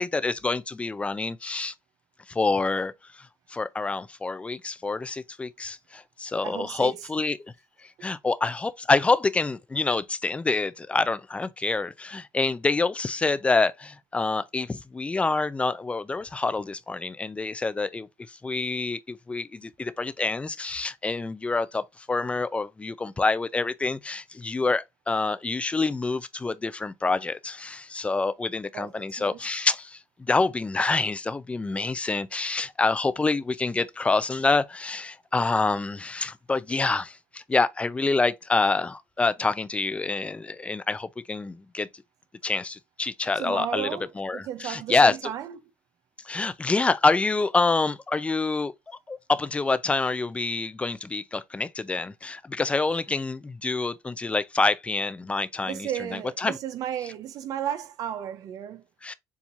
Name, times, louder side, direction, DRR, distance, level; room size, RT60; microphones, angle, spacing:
voice 1, 0.0-1.7 2.3-2.9 3.2-7.5 8.0-41.9 42.4-43.9 44.2-45.1 46.2-55.9 56.4-56.5 59.0-59.1, left 3 dB, 20° left, 0.6 m, -27 dB
voice 2, 6.4-7.1 28.7-29.6 43.4-45.6 55.6-58.8, right 10 dB, 70° right, 0.9 m, -34 dB
7.2 x 2.8 x 2.6 m
cardioid pair, 100°, 6 cm